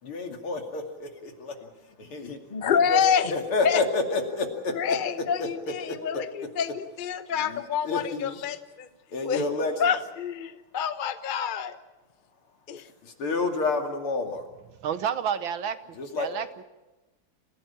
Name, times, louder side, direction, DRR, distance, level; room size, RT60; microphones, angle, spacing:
voice 1, 0.0-1.7 2.0-3.0 3.3-4.7 7.4-8.4 9.1-9.9 13.0-14.4 15.9-16.3, left 3 dB, 80° left, 4 dB, 3.4 m, -29 dB
voice 2, 2.5-3.3 3.6-3.8 4.7-8.9 9.2-9.4 9.8-11.8 12.7-12.9, left 7 dB, 40° left, 10 dB, 0.7 m, -27 dB
voice 3, 14.8-15.8 16.2-16.6, right 8 dB, 70° right, 12 dB, 1.7 m, -29 dB
26.5 x 16.0 x 8.7 m, 1.1 s
omnidirectional pair, 2.4 m